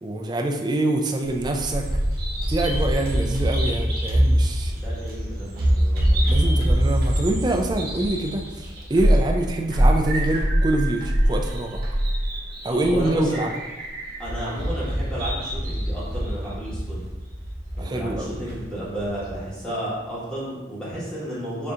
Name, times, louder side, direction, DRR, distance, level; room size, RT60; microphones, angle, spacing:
voice 1, 0.0-1.9 2.5-4.7 6.3-11.8 12.6-13.5 17.8-18.3, right 1 dB, 20° right, 2 dB, 0.3 m, -25 dB
Bird vocalization bird call bird song, 1.2-19.4, equal, 50° right, 0.9 m, -24 dB
voice 2, 4.7-6.6 12.7-13.4 14.2-17.0 17.8-21.7, right 1 dB, 5° left, -10 dB, 1.3 m, -32 dB
6.6 x 2.8 x 2.4 m, 1.1 s
head